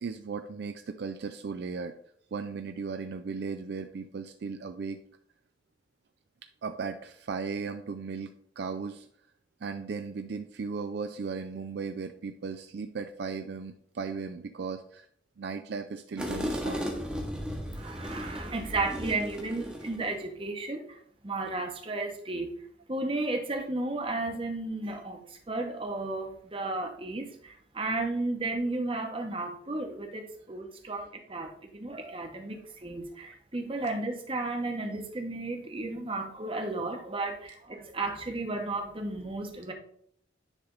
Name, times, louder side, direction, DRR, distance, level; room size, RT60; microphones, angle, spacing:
voice 1, 0.0-1.9 2.3-5.0 6.6-8.3 8.6-9.1 9.6-15.1 15.4-16.9, right 5 dB, 60° right, 8 dB, 0.4 m, -36 dB
sound 1, 16.2-20.2, equal, 5° right, 1.0 m, -35 dB
voice 2, 17.7-21.0 21.2-22.6 22.9-39.7, right 2 dB, 30° right, 3 dB, 0.9 m, -33 dB
9.8 x 3.3 x 3.8 m, 0.63 s
head